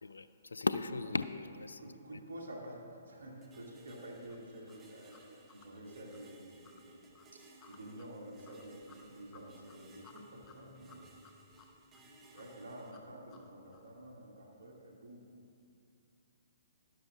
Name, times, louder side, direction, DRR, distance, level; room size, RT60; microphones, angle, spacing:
voice 1, 0.0-1.8, left 3 dB, 85° left, 13 dB, 0.3 m, -36 dB
voice 2, 1.8-7.1 7.3-11.1 12.3-15.3, right 1 dB, 70° right, -2 dB, 2.0 m, -49 dB
sound 1, 3.4-12.9, right 2 dB, 20° right, 1.0 m, -60 dB
sound 2, 3.9-14.0, left 4 dB, 25° left, 0.7 m, -61 dB
11.5 x 10.5 x 2.4 m, 2.4 s
figure-of-eight pair, 130°, 0 cm